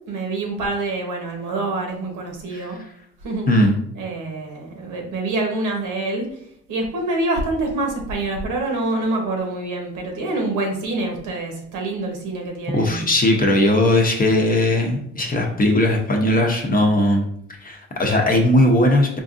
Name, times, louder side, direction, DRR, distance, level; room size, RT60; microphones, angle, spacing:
voice 1, 0.1-2.8 3.2-3.5 3.9-6.3 6.7-13.0, right 2 dB, 85° right, 0 dB, 1.1 m, -26 dB
voice 2, 12.7-17.3 17.6-19.2, left 1 dB, 30° left, 1 dB, 0.7 m, -18 dB
4.4 x 2.5 x 2.5 m, 0.68 s
cardioid pair, 90°, 30 cm